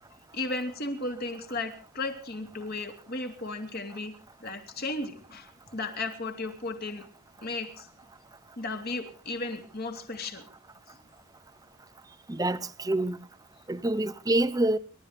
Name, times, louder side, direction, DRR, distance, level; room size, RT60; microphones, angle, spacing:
voice 1, 0.3-4.1 4.4-7.0 7.4-7.9 8.6-10.4, left 2 dB, 45° left, 3.2 m, -35 dB
voice 2, 12.3-13.2 13.7-14.8, right 1 dB, 15° right, 0.7 m, -26 dB
29.5 x 13.0 x 3.5 m
head